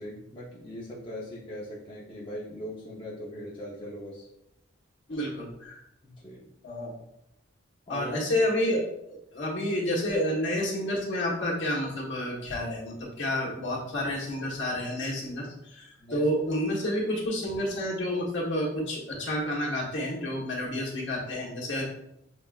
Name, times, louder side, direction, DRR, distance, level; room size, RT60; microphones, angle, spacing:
voice 1, 0.0-4.3 5.1-5.2 6.0-6.5 7.9-8.4 16.0-16.3, equal, 25° left, -7 dB, 0.7 m, -40 dB
voice 2, 5.1-5.8 6.6-6.9 7.9-8.8 9.1-21.8, left 1 dB, 60° left, -4 dB, 1.3 m, -30 dB
7.3 x 2.4 x 2.4 m, 0.82 s
head